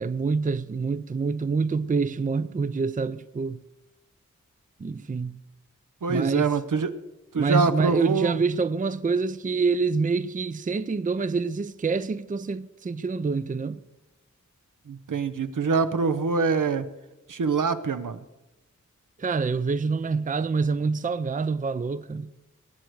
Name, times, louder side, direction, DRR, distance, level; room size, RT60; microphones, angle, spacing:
voice 1, 0.0-3.6 4.8-5.4 6.1-6.5 7.4-13.8 19.2-22.3, right 4 dB, 25° right, 0.5 m, -26 dB
voice 2, 6.0-6.9 7.3-8.4 14.9-16.9 17.3-18.2, right 4 dB, 80° right, 0.8 m, -25 dB
20.0 x 9.1 x 4.7 m
wide cardioid pair, 65°, 31 cm